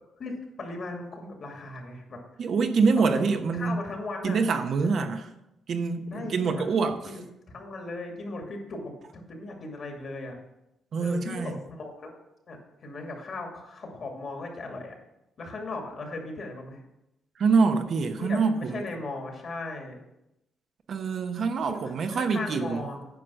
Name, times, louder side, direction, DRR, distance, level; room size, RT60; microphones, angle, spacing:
voice 1, 0.2-2.2 2.9-4.5 4.8-5.2 6.1-6.7 7.1-7.2 7.5-10.3 11.0-12.1 12.5-15.0 15.4-16.8 18.2-20.0 21.7-23.1, left 2 dB, 50° left, 2 dB, 2.4 m, -37 dB
voice 2, 2.4-3.8 4.2-5.3 5.7-7.0 10.9-11.6 17.4-18.9 20.9-22.9, right 4 dB, 60° right, 6 dB, 0.9 m, -25 dB
9.4 x 5.0 x 6.3 m, 0.87 s
cardioid pair, 90°, 0 cm